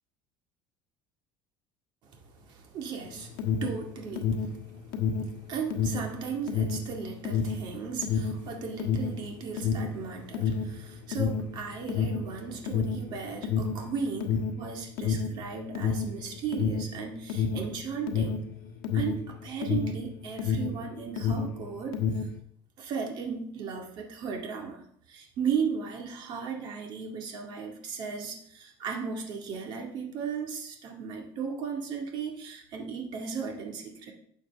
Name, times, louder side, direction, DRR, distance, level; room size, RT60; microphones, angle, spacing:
voice 1, 2.5-4.6 4.9-18.4 18.9-22.0 22.8-24.8 25.1-34.1, right 6 dB, 40° right, 2 dB, 2.0 m, -36 dB
Alarm, 3.0-20.8 21.1-22.4, left 6 dB, 70° left, 1.3 m, -29 dB
12.0 x 8.0 x 3.5 m, 0.65 s
cardioid pair, 170°, 11 cm